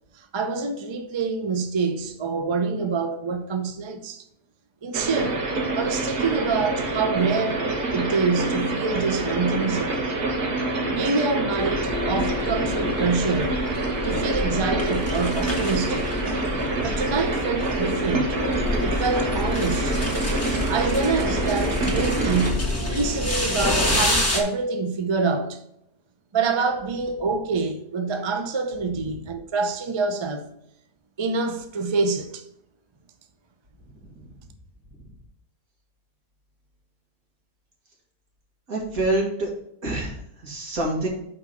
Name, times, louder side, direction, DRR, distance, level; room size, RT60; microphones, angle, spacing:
voice 1, 0.1-4.2 4.8-5.4 5.7-10.1 10.9-13.6 14.0-16.0 16.8-18.4 18.8-20.0 20.7-25.6 26.3-30.5 31.2-32.4, right 4 dB, 40° right, 0.4 m, -26 dB
sound 1, 4.9-22.5, right 2 dB, 90° right, 2.0 m, -27 dB
sound 2, 11.6-24.4, left 1 dB, 10° left, 1.5 m, -28 dB
voice 2, 38.7-39.5 39.8-41.1, right 2 dB, 65° right, 2.4 m, -27 dB
6.0 x 4.9 x 6.0 m
omnidirectional pair, 1.6 m